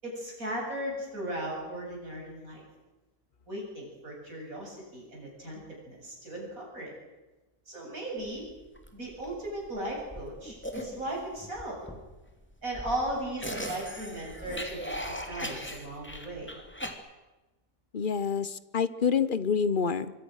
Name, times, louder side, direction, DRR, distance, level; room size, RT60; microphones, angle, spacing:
voice 1, 0.0-2.6 3.5-6.9 7.7-8.4 8.9-11.8 12.6-16.5, right 1 dB, 65° right, -2 dB, 8.4 m, -37 dB
sound 1, 8.2-16.9, equal, 5° left, 2.5 m, -39 dB
voice 2, 17.9-20.1, left 6 dB, 40° left, 15 dB, 0.9 m, -27 dB
25.0 x 23.5 x 6.5 m, 1.1 s
omnidirectional pair, 1.6 m